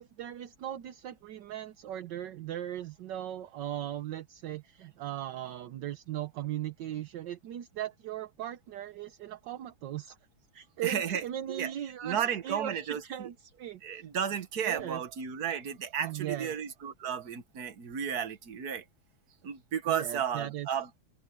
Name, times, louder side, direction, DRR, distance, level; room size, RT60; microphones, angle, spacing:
voice 1, 0.0-10.2 10.5-14.1 14.6-15.0 16.0-16.5 19.9-20.7, right 12 dB, 65° right, 1.3 m, -38 dB
voice 2, 10.8-11.7 12.0-13.3 13.8-18.8 19.4-21.0, right 8 dB, 50° right, 1.7 m, -33 dB
open air
omnidirectional pair, 2.4 m